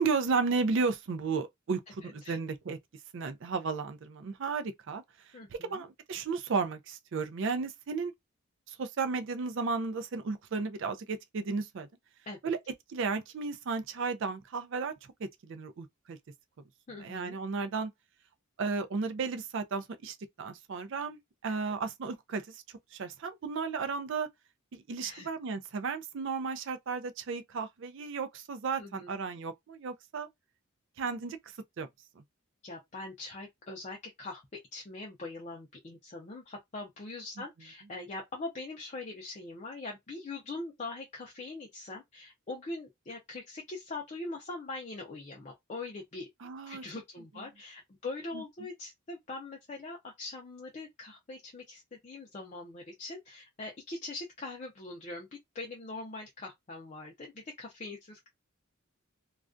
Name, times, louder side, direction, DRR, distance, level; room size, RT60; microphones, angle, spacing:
voice 1, 0.0-2.8 3.1-5.0 5.5-8.1 8.7-11.9 12.4-12.6 12.9-14.9 15.4-16.2 17.0-17.9 18.6-22.6 22.9-24.3 24.7-30.3 31.0-31.4 31.8-31.9 46.4-46.8 48.3-48.4, right 4 dB, 55° right, 0.4 m, -34 dB
voice 2, 5.3-5.8 12.3-12.4 16.9-17.4 21.5-21.6 25.0-25.3 28.8-29.1 32.6-34.4 34.7-46.3 46.7-58.3, left 2 dB, 30° left, 0.4 m, -42 dB
2.3 x 2.2 x 2.4 m
head